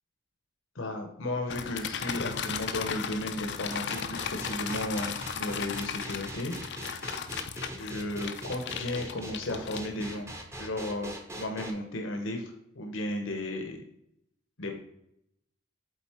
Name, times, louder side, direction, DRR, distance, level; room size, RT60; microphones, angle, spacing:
voice 1, 0.7-6.6 6.9-7.1 7.8-10.3 10.6-13.8 14.6-14.8, left 1 dB, 70° left, 4 dB, 1.0 m, -34 dB
sound 1, 1.5-10.2, left 7 dB, 55° left, 0.5 m, -36 dB
sound 2, 3.7-11.7, right 1 dB, 15° right, 0.8 m, -41 dB
8.2 x 4.0 x 4.4 m, 0.77 s
head